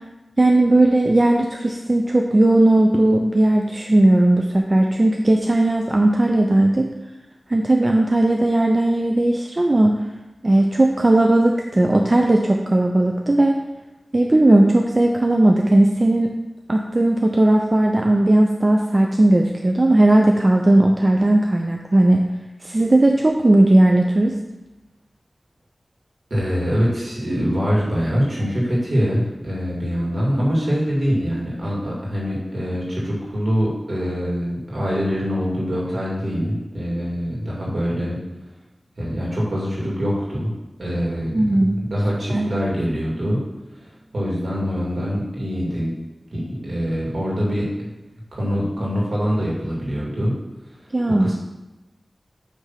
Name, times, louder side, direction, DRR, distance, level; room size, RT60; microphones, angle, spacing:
voice 1, 0.4-6.9 7.5-10.0 10.4-13.6 14.1-16.3 16.7-22.2 22.6-24.3 41.3-41.8 42.3-42.5 50.9-51.3, right 1 dB, 40° right, 2 dB, 0.6 m, -17 dB
voice 2, 26.3-38.2 39.0-40.5 40.8-43.4 43.7-45.9 46.3-47.9 48.3-50.3 51.1-51.3, equal, 75° right, -5 dB, 2.7 m, -24 dB
8.3 x 3.6 x 5.7 m, 1.0 s
wide cardioid pair, 50°, 0 cm